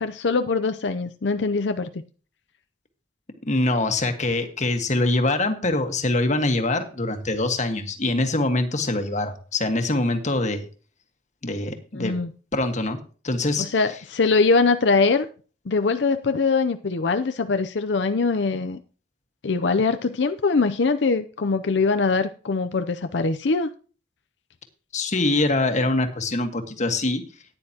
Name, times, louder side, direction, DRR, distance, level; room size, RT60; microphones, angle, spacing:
voice 1, 0.0-2.0 11.9-12.3 13.6-15.3 15.7-18.8 19.4-23.7, left 4 dB, 90° left, 0.6 m, -22 dB
voice 2, 3.4-10.7 11.4-12.1 12.5-13.0 13.2-13.7 24.9-27.2, left 2 dB, 45° left, 1.6 m, -24 dB
14.5 x 9.7 x 2.9 m
head